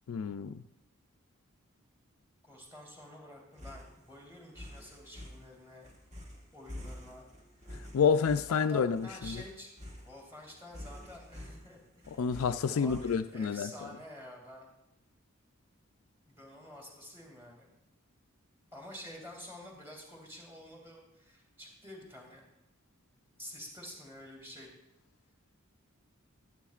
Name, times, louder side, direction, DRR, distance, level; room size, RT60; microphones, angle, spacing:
voice 1, 0.1-0.6 7.9-9.4 12.2-13.7, left 6 dB, 80° left, 11 dB, 0.4 m, -29 dB
voice 2, 2.4-5.9 6.5-7.3 8.5-9.7 10.0-12.3 12.7-14.7 16.3-17.7 18.7-22.4 23.4-24.7, left 1 dB, 10° right, -1 dB, 2.4 m, -49 dB
sound 1, 3.5-13.6, left 1 dB, 35° right, 1.4 m, -48 dB
11.5 x 9.9 x 2.4 m, 0.89 s
head